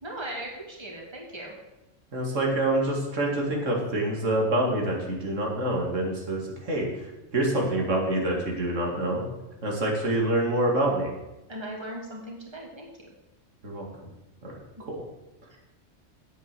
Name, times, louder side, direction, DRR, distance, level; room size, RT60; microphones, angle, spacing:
voice 1, 0.0-1.5 11.5-13.1 15.5-15.6, right 1 dB, 20° right, -2 dB, 2.3 m, -38 dB
voice 2, 2.1-6.9 7.3-9.2 9.6-11.1 13.6-13.9 14.4-14.5 14.9-15.0, right 1 dB, 90° right, -1 dB, 2.5 m, -26 dB
9.2 x 8.3 x 6.8 m, 0.95 s
omnidirectional pair, 1.3 m